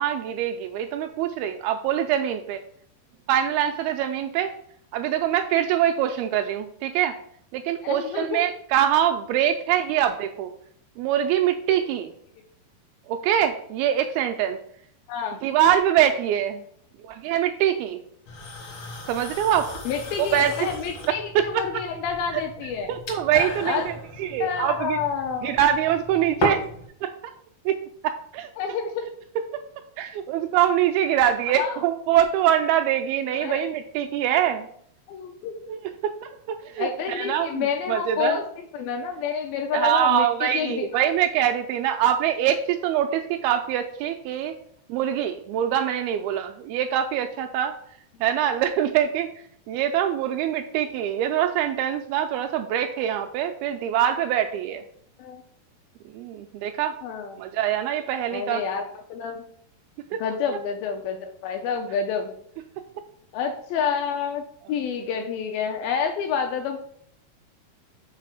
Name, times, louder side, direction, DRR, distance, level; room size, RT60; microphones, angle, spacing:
voice 1, 0.0-2.6 3.3-4.5 4.9-7.2 7.5-10.5 11.0-12.1 13.1-14.6 15.4-16.6 17.0-18.0 19.1-19.7 20.3-20.7 21.5-21.8 22.3-22.4 22.9-25.0 25.4-26.6 27.0-27.3 27.7-27.8 28.3-28.5 29.5-29.6 30.0-34.7 35.7-35.8 36.2-38.4 39.7-44.6 44.9-47.8 48.2-49.3 49.7-54.8 56.1-56.9 57.4-58.7, right 10 dB, 85° right, 6 dB, 2.2 m, -24 dB
voice 2, 7.8-8.4 15.1-15.4 19.9-22.9 23.6-23.9 24.4-25.6 28.6-29.1 31.5-31.8 33.4-33.6 35.1-35.7 36.8-38.4 38.7-41.1 55.2-55.4 57.0-57.4 58.3-58.8 59.1-59.4 60.2-62.3 63.3-64.4 64.7-66.8, left 6 dB, 80° left, 4 dB, 2.2 m, -28 dB
sound 1, 18.3-26.9, left 1 dB, 60° left, 1.2 m, -35 dB
6.6 x 4.1 x 6.4 m, 0.66 s
omnidirectional pair, 4.7 m